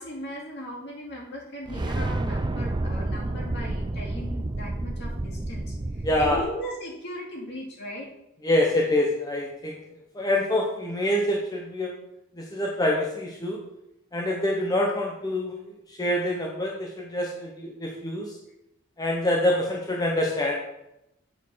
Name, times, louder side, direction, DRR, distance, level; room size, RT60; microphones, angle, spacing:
voice 1, 0.0-8.1, equal, 55° left, -3 dB, 2.5 m, -38 dB
sound 1, 1.7-6.4, right 2 dB, 20° right, 0.4 m, -30 dB
voice 2, 6.0-6.4 8.4-9.8 10.1-11.9 12.4-13.6 14.1-18.4 19.0-20.6, left 1 dB, 20° left, -1 dB, 0.9 m, -26 dB
8.5 x 4.4 x 5.6 m, 0.87 s
head